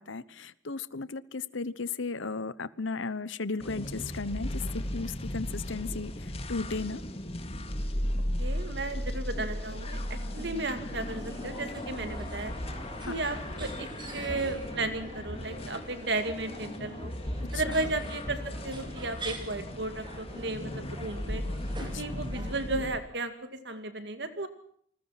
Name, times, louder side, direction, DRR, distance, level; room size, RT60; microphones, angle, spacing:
voice 1, 0.0-7.1 13.0-13.1 17.5-17.8 21.9-22.0, left 4 dB, 75° left, 17 dB, 1.0 m, -35 dB
sound 1, 3.6-23.0, left 1 dB, 30° left, 2.3 m, -36 dB
voice 2, 8.4-12.6 13.1-17.1 17.5-21.4 22.0-23.3 23.6-24.5, right 2 dB, 60° right, 9 dB, 2.3 m, -34 dB
sound 2, 8.9-22.6, right 1 dB, 25° right, 4.8 m, -46 dB
28.5 x 20.5 x 5.9 m, 0.64 s
head